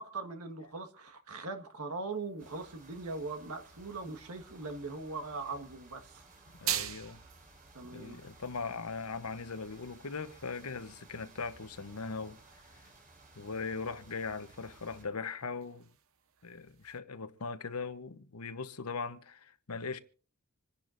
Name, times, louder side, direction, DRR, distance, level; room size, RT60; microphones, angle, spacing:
voice 1, 0.0-6.2 7.7-8.2, right 3 dB, 90° right, 1.6 m, -40 dB
sound 1, 2.1-17.0, right 11 dB, 65° right, 0.9 m, -46 dB
sound 2, 2.4-15.0, right 2 dB, 40° right, 3.9 m, -58 dB
voice 2, 6.6-7.2 7.9-12.4 13.4-15.9 16.4-20.0, left 4 dB, 80° left, 1.0 m, -39 dB
27.0 x 10.5 x 2.6 m
head